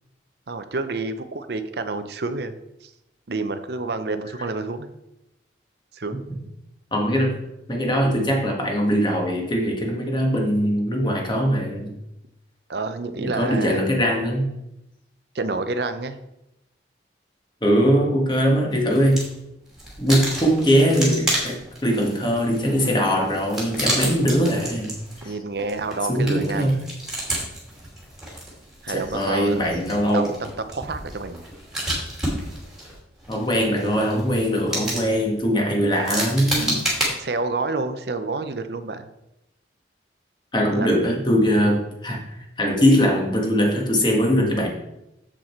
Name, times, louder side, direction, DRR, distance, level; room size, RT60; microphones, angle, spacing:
voice 1, 0.5-2.9 3.3-4.9 5.9-6.2 12.7-13.8 15.3-16.2 25.2-26.9 28.8-29.6 30.1-30.3 30.6-31.4 37.2-39.1 40.7-40.9, right 3 dB, 60° right, 9 dB, 0.7 m, -28 dB
voice 2, 6.9-7.4 7.7-11.9 13.2-14.5 17.6-19.2 20.0-24.9 25.2-25.3 26.1-26.7 28.9-30.3 33.3-36.8 40.5-44.7, equal, 25° left, 0 dB, 1.5 m, -21 dB
sound 1, 18.7-19.4 19.7-37.1, right 1 dB, 5° right, 2.4 m, -31 dB
7.6 x 6.5 x 4.4 m, 0.89 s
head